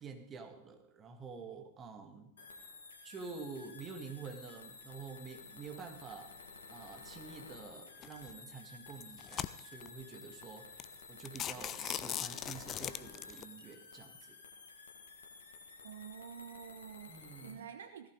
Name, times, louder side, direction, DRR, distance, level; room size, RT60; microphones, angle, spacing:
voice 1, 0.0-2.3 3.0-6.3 6.7-10.8 11.1-14.4 17.1-17.7, right 5 dB, 25° right, 5 dB, 1.9 m, -48 dB
sound 1, 2.4-17.6, left 4 dB, 70° left, 1.9 m, -53 dB
sound 2, 8.0-8.3 8.9-9.9 10.4-10.5 10.8-10.9 11.2-13.4, left 10 dB, 30° left, 0.5 m, -39 dB
voice 2, 15.8-17.1 17.4-18.1, right 7 dB, 65° right, 9 dB, 0.8 m, -48 dB
16.5 x 14.5 x 3.8 m, 0.75 s
figure-of-eight pair, 90°, 0 cm